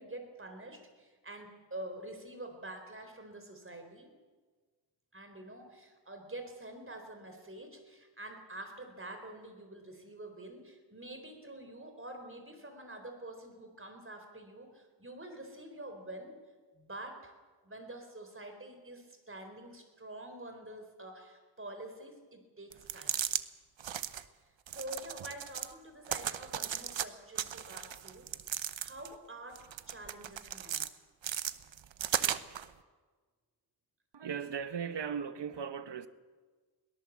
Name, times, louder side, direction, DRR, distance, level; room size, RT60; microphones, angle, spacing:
voice 1, 0.0-4.1 5.1-16.4 16.7-17.3 17.6-23.1 24.7-28.3 28.8-30.9, right 1 dB, 30° right, 4.1 m, -47 dB
sound 1, 22.7-23.4 23.8-24.2 24.7-25.7 26.1-27.1 27.4-29.1 29.6-30.9 31.2-32.7, right 9 dB, 90° right, 0.9 m, -36 dB
voice 2, 34.1-36.1, right 7 dB, 65° right, 1.1 m, -37 dB
22.5 x 18.0 x 7.5 m
wide cardioid pair, 100°, 44 cm